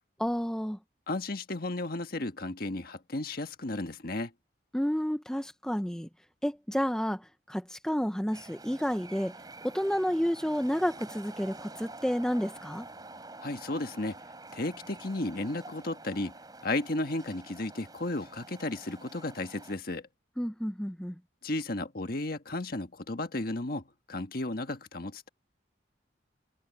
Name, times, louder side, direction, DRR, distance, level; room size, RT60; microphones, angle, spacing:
voice 1, 0.2-0.8 4.7-6.1 6.4-9.3 9.6-12.9 20.4-21.1, equal, 5° left, 0.6 m, -30 dB
voice 2, 1.1-4.3 13.4-14.2 14.5-16.3 16.6-20.1 21.4-25.3, left 2 dB, 50° left, 1.5 m, -34 dB
sound 1, 8.3-19.7, right 2 dB, 20° right, 4.3 m, -48 dB
head